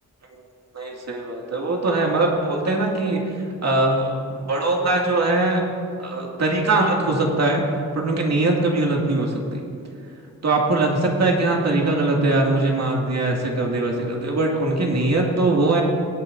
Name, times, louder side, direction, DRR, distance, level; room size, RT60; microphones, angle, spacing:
voice 1, 0.7-3.3 3.6-5.7 6.0-7.6 7.9-9.6 10.4-15.8, right 2 dB, 50° right, 0 dB, 2.3 m, -21 dB
22.5 x 8.7 x 2.7 m, 2.4 s
cardioid pair, 65°, 33 cm